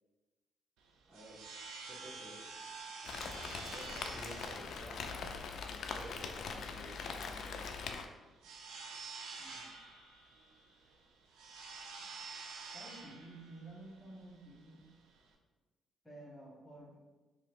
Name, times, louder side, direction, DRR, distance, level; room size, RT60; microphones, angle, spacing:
sound 1, 0.8-15.3, right 4 dB, 90° right, 0.5 m, -49 dB
voice 1, 1.1-1.4 1.9-2.5 3.7-5.0 5.9-7.7, right 1 dB, 30° right, -9 dB, 1.2 m, -53 dB
Rain, 3.0-8.1, left 5 dB, 65° left, 0.4 m, -42 dB
voice 2, 12.7-14.9 16.0-17.0, right 2 dB, 10° left, -5 dB, 1.2 m, -52 dB
3.0 x 2.9 x 4.2 m, 1.2 s
cardioid pair, 90°, 0 cm